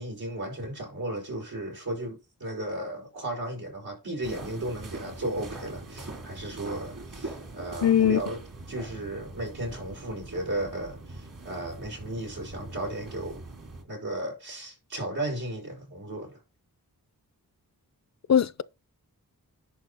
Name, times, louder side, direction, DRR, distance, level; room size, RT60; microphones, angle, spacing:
voice 1, 0.0-8.4 8.7-13.4 13.8-16.4, right 1 dB, 90° right, 5.2 m, -35 dB
sound 1, 4.2-13.8, right 2 dB, 60° right, 2.9 m, -42 dB
voice 2, 7.8-8.2 18.3-18.6, left 9 dB, 50° left, 0.5 m, -20 dB
11.0 x 5.0 x 4.0 m
wide cardioid pair, 70°, 36 cm